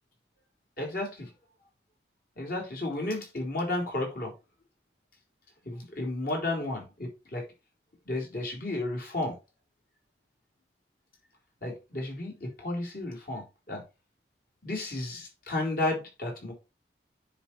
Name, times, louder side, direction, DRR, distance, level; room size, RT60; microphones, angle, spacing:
voice 1, 0.8-1.3 2.4-4.3 5.6-7.4 8.1-9.4 11.6-13.8 14.6-16.5, left 2 dB, 55° left, -1 dB, 3.9 m, -33 dB
9.8 x 4.4 x 4.5 m, 0.27 s
head